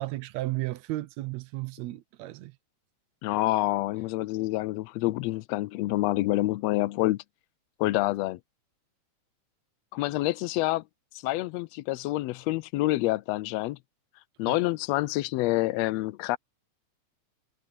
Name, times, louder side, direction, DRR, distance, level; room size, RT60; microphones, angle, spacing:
voice 1, 0.0-2.6 14.5-14.6, right 18 dB, 75° right, 1.8 m, -34 dB
voice 2, 3.2-7.2 7.8-8.4 9.9-10.8 11.2-13.8 14.4-16.4, left 18 dB, 80° left, 1.5 m, -27 dB
omnidirectional pair, 3.4 m